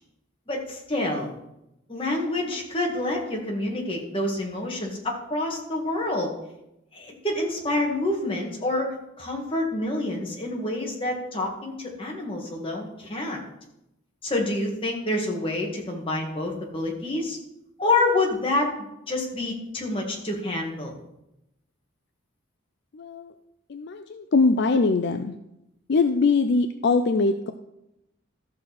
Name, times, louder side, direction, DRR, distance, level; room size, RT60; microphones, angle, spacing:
voice 1, 0.5-1.3 1.9-6.3 6.9-13.4 14.2-17.4 17.8-18.7 19.1-20.9, left 2 dB, 25° left, -1 dB, 1.9 m, -27 dB
voice 2, 22.9-23.3 23.7-25.3 25.9-27.5, left 4 dB, 55° left, 8 dB, 0.5 m, -22 dB
14.0 x 6.3 x 4.2 m, 0.86 s
head